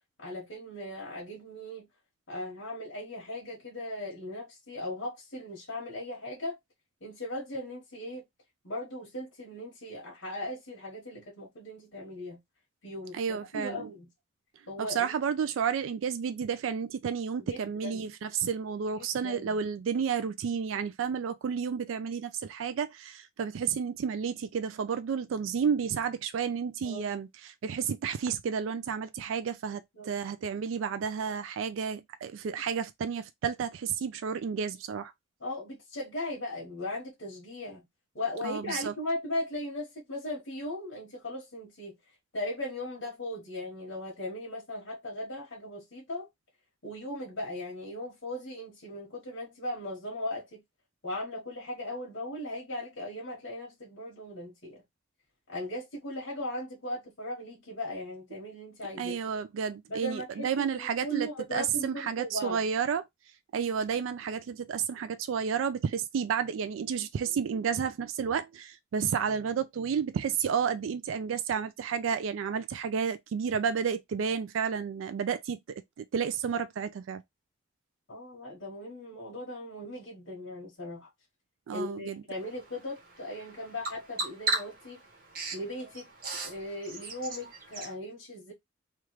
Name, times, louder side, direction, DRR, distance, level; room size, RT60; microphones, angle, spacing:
voice 1, 0.2-1.9 2.3-6.6 7.0-8.2 8.6-12.4 12.8-14.1 14.7-15.1 17.5-18.1 18.9-19.6 26.8-27.2 29.9-30.1 35.4-37.8 38.1-41.9 42.3-46.3 46.8-50.6 51.0-54.8 55.5-59.2 59.9-62.6 78.1-81.1 81.7-85.0 85.5-86.1 86.4-88.5, left 1 dB, 85° left, 1.3 m, -38 dB
voice 2, 13.1-13.9 14.8-35.1 38.4-38.9 59.0-63.0 63.5-77.2 81.7-82.2, right 7 dB, 90° right, 0.3 m, -31 dB
Bird vocalization bird call bird song, 82.3-87.9, right 3 dB, 45° right, 1.1 m, -37 dB
3.2 x 2.4 x 3.0 m
head